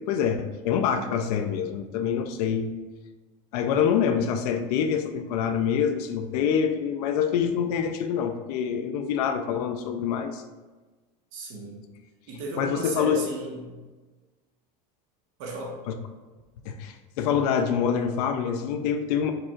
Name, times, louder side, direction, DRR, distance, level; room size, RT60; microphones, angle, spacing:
voice 1, 0.0-2.7 3.5-10.4 12.6-13.2 16.7-19.3, left 7 dB, 80° left, 6 dB, 0.5 m, -26 dB
voice 2, 11.3-11.8 12.3-13.7 15.4-15.8, right 2 dB, 60° right, -2 dB, 1.3 m, -35 dB
4.7 x 2.4 x 4.4 m, 1.3 s
cardioid pair, 175°, 20 cm